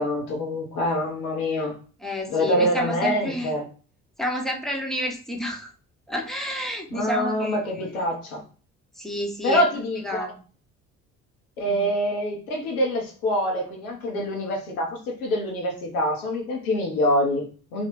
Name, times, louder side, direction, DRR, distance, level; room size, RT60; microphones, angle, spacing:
voice 1, 0.0-1.8 2.3-3.6 6.9-8.4 9.4-10.2 11.6-17.9, equal, 75° left, 0 dB, 1.1 m, -25 dB
voice 2, 2.0-3.6 4.2-5.7 6.1-8.0 9.0-9.7 10.0-10.3 11.6-11.9, left 1 dB, ahead, 1 dB, 0.9 m, -30 dB
3.9 x 2.4 x 3.1 m, 0.39 s
figure-of-eight pair, 50°, 44 cm